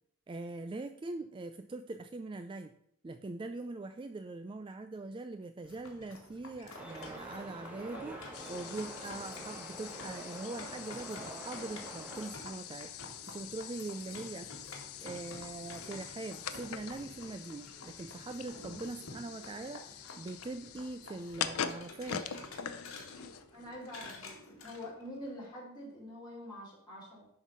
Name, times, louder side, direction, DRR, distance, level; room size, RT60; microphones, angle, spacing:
voice 1, 0.3-2.7 3.0-8.2 8.5-12.9 13.3-14.7 15.0-22.3, right 2 dB, 25° right, 8 dB, 0.3 m, -42 dB
sound 1, 5.6-25.4, left 2 dB, 70° left, 1.9 m, -50 dB
sound 2, 6.7-12.3, right 1 dB, 5° right, 1.5 m, -47 dB
sound 3, 8.3-23.7, left 8 dB, 90° left, 0.6 m, -44 dB
voice 2, 23.5-24.3 24.6-27.3, left 1 dB, 20° left, -6 dB, 3.4 m, -45 dB
11.0 x 4.0 x 5.4 m, 0.69 s
head